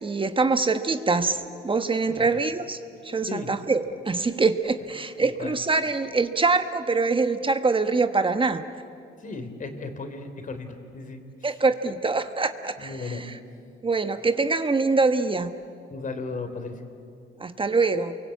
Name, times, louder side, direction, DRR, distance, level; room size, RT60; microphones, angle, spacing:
voice 1, 0.0-2.8 3.0-8.6 11.4-13.2 13.8-15.5 17.4-18.2, right 4 dB, 25° right, 9 dB, 1.2 m, -24 dB
voice 2, 2.1-2.4 3.3-3.5 5.2-5.6 9.2-11.6 12.8-13.3 15.9-16.8, left 3 dB, 40° left, 7 dB, 3.4 m, -36 dB
28.5 x 23.5 x 8.5 m, 2.5 s
cardioid pair, 90°, 20 cm